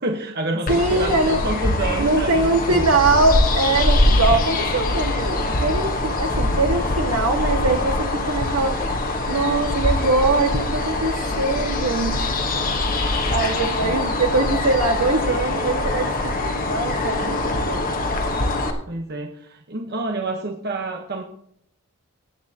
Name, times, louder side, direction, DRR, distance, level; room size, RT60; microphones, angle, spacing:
voice 1, 0.0-3.0 13.8-14.0 18.9-21.2, right 2 dB, 45° right, 3 dB, 1.1 m, -28 dB
sound 1, 0.7-18.7, left 2 dB, 40° left, 1.2 m, -23 dB
voice 2, 0.7-1.4 2.0-9.0 9.3-12.3 12.9-17.9, right 2 dB, 75° right, 3 dB, 1.8 m, -22 dB
19.5 x 8.5 x 2.9 m, 0.68 s
head